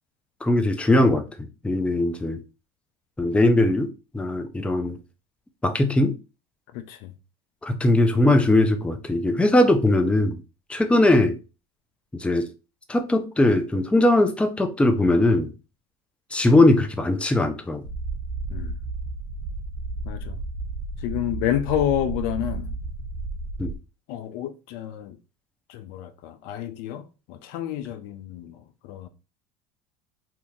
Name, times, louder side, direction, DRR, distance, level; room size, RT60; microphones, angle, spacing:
voice 1, 0.4-1.2 1.6-2.4 3.2-3.9 4.1-5.0 5.6-6.1 7.6-10.4 10.7-11.4 12.1-12.5 12.9-15.5 16.3-17.8 23.6-23.7, left 1 dB, 5° left, 0.5 m, -20 dB
voice 2, 6.7-7.1 18.5-18.8 20.0-20.4 21.0-22.7 24.1-25.2 25.7-29.1, left 11 dB, 65° left, 0.5 m, -29 dB
sound 1, 17.8-23.8, right 3 dB, 80° right, 0.7 m, -32 dB
2.9 x 2.5 x 3.5 m
supercardioid pair, 95°, 18 cm